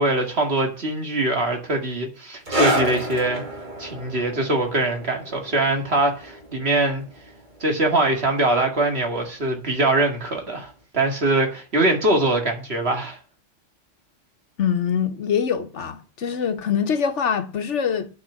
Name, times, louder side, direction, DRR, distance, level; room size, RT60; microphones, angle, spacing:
voice 1, 0.0-3.4 3.8-7.0 7.6-13.2, right 2 dB, 55° right, 2.3 m, -22 dB
sound 1, 2.5-9.5 9.7-9.9 10.7-10.8, right 1 dB, 40° right, 2.6 m, -30 dB
voice 2, 14.6-18.1, left 7 dB, 70° left, 1.3 m, -24 dB
8.9 x 6.0 x 8.3 m
omnidirectional pair, 1.3 m